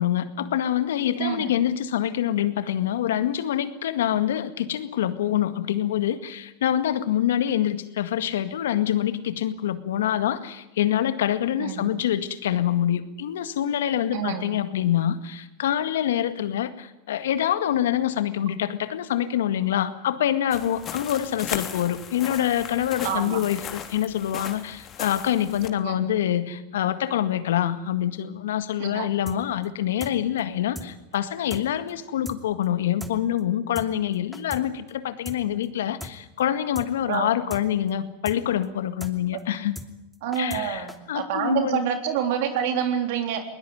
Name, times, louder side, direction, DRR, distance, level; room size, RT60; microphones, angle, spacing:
voice 1, 0.0-39.8 40.4-41.8, left 11 dB, 80° left, 11 dB, 1.9 m, -26 dB
voice 2, 1.2-1.6 11.6-12.0 14.1-14.4 23.0-23.4 25.8-26.1 28.8-29.1 37.1-37.3 39.3-39.4 40.2-43.4, right 8 dB, 65° right, 6 dB, 3.6 m, -27 dB
sound 1, 20.5-25.7, left 8 dB, 35° left, 3.0 m, -37 dB
sound 2, 29.3-29.4 29.6-29.7 30.0-30.1 30.4-30.5 30.7-30.9 31.1-31.2 31.5-31.6 31.9-32.0 32.2-32.4 32.6-32.7 33.0-33.1 33.4-33.5 33.7-33.9 34.1-34.6 34.9-35.0 35.2-35.4 35.6-35.7 36.0-36.1 36.4-36.5 36.7-36.9 37.1-37.2 37.5-37.6 37.9-38.0 38.2-38.4 38.6-38.7 39.0-39.1 39.4-39.5 39.7-39.9 40.1-40.6 40.9-41.0, equal, ahead, 2.8 m, -38 dB
21.0 x 20.0 x 9.6 m, 0.90 s
hypercardioid pair, 100°, 0 cm